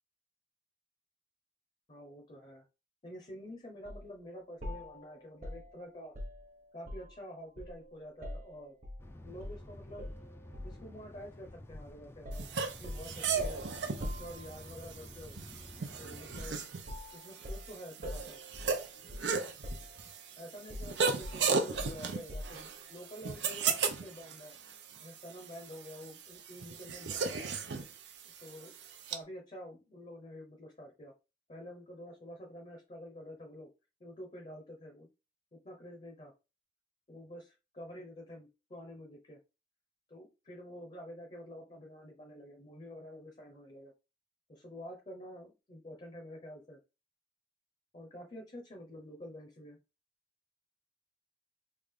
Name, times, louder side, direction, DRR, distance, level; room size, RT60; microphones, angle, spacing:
voice 1, 1.9-2.6 3.0-6.1 6.7-8.7 9.2-10.1 10.6-13.6 14.0-15.4 16.0-16.6 17.1-18.4 20.4-24.5 25.0-27.5 28.4-28.7 29.1-31.1 31.5-33.7 34.0-35.1 35.5-36.3 37.1-39.4 40.1-43.9 44.5-46.8 47.9-49.8, equal, 35° left, 2 dB, 0.7 m, -48 dB
sound 1, 3.9-4.1 4.6-7.2 7.6-9.0 9.4-9.6 10.0-10.9 11.7-11.9 12.3-14.8 16.3-16.6 16.9-19.4 19.6-20.3 20.7-22.7, left 1 dB, 45° right, 1.0 m, -44 dB
sound 2, 9.0-16.5, left 1 dB, 15° left, 0.4 m, -51 dB
sound 3, 12.3-29.2, right 5 dB, 85° right, 0.6 m, -36 dB
3.4 x 2.4 x 3.5 m, 0.28 s
head